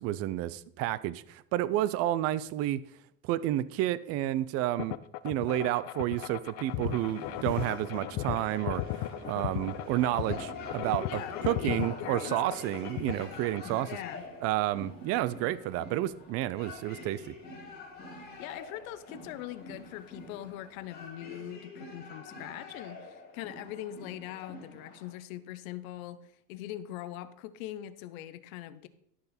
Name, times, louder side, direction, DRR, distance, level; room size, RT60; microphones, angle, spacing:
voice 1, 0.0-2.8 3.2-5.0 5.2-8.8 9.3-13.9 14.4-17.3, right 14 dB, 40° right, 0.4 m, -30 dB
sound 1, 4.8-13.7, left 16 dB, 55° left, 0.5 m, -36 dB
sound 2, 6.2-21.1, right 3 dB, 60° right, 2.9 m, -51 dB
sound 3, 8.2-25.1, left 3 dB, 25° left, 3.8 m, -46 dB
voice 2, 11.1-12.4 13.8-14.3 18.4-28.9, left 13 dB, 85° left, 0.9 m, -42 dB
12.0 x 6.7 x 4.2 m
cardioid pair, 155°, 40 cm